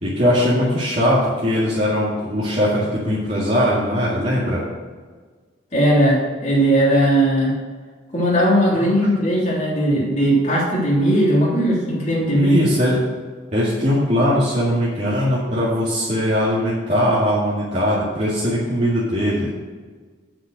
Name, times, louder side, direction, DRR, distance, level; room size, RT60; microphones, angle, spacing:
voice 1, 0.0-4.6 8.7-8.9 12.4-13.0 13.5-19.5, equal, 35° right, -9 dB, 2.2 m, -20 dB
voice 2, 5.7-7.5 8.1-12.6, right 1 dB, 35° left, -6 dB, 3.3 m, -18 dB
9.5 x 5.8 x 6.5 m, 1.5 s
head